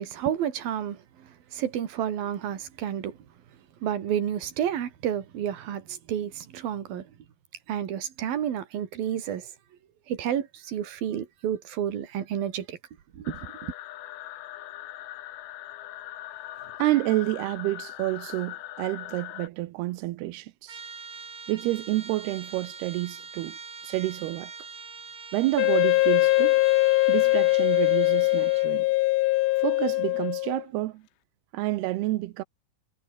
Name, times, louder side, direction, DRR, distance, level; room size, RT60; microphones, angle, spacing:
voice 1, 0.0-3.2 3.8-7.1 7.7-9.5 10.1-12.8 13.1-13.7, right 9 dB, 55° right, 3.8 m, -30 dB
sound 1, 13.3-19.5, left 14 dB, 70° left, 3.4 m, -41 dB
voice 2, 16.8-20.8 21.5-23.6 23.8-24.5 25.3-26.6 27.1-28.9 29.6-31.0 31.5-32.4, right 17 dB, 80° right, 2.4 m, -29 dB
Trumpet, 20.7-28.8, right 5 dB, 30° right, 3.7 m, -43 dB
Wind instrument woodwind instrument, 25.6-30.6, left 20 dB, 85° left, 3.2 m, -22 dB
omnidirectional pair, 5.5 m